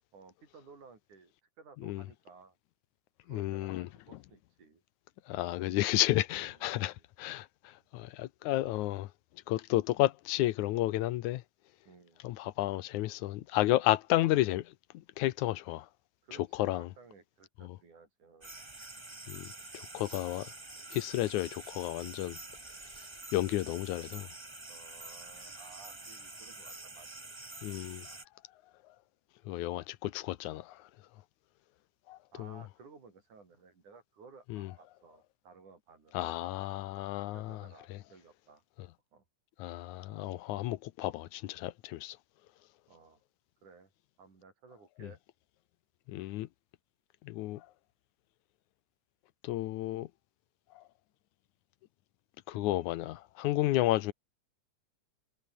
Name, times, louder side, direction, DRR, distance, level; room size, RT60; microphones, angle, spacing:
voice 1, 0.1-2.6 3.2-4.8 6.4-7.1 11.8-12.2 16.2-18.5 24.7-27.1 28.1-28.2 32.3-36.4 37.1-38.6 39.1-39.2 42.9-43.2 43.6-43.9 44.2-45.2, right 4 dB, 80° right, 6.8 m, -57 dB
voice 2, 3.3-3.9 5.3-7.5 7.9-9.1 9.5-11.4 12.2-14.7 15.2-15.9 16.6-16.9 19.3-19.5 19.7-20.5 20.9-22.4 23.3-24.3 27.6-28.1 29.5-30.8 32.1-32.6 34.5-34.7 36.1-37.6 37.9-38.0 39.6-42.2 46.1-46.5 47.3-47.6 49.4-50.1 52.5-54.1, left 16 dB, 80° left, 2.2 m, -32 dB
sound 1, 18.4-28.2, right 2 dB, 25° right, 0.6 m, -47 dB
omnidirectional pair, 3.5 m